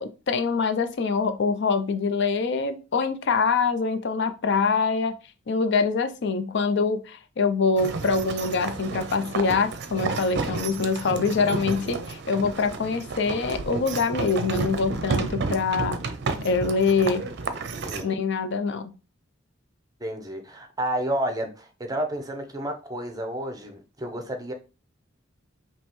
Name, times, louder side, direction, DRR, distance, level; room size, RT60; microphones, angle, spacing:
voice 1, 0.0-5.1 5.5-16.0 16.4-17.2 18.0-18.9, left 4 dB, 60° left, 0.5 m, -24 dB
sound 1, 7.8-18.0, right 3 dB, 60° right, 0.6 m, -31 dB
voice 2, 17.8-18.2 20.0-24.5, right 1 dB, 20° right, 0.8 m, -31 dB
5.2 x 3.0 x 3.0 m
head